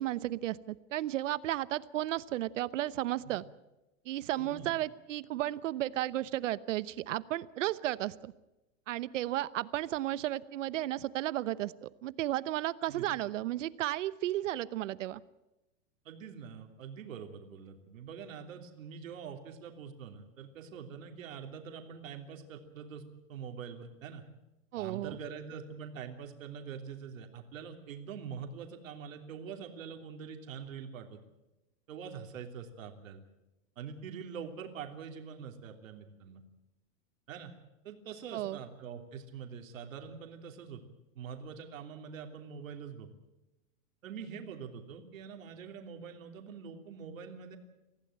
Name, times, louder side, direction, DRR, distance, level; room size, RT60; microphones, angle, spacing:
voice 1, 0.0-3.4 4.0-8.3 8.9-15.2 24.7-25.2 38.3-38.6, right 14 dB, 70° right, 18 dB, 1.0 m, -34 dB
voice 2, 4.4-4.7 12.9-13.1 16.0-23.0 23.3-24.2 24.7-31.2 31.9-33.2 33.8-36.4 37.3-37.5 37.8-40.8 41.1-43.1 44.0-47.6, right 7 dB, 90° right, 5 dB, 3.2 m, -44 dB
24.5 x 15.5 x 8.8 m, 0.99 s
supercardioid pair, 175°, 39 cm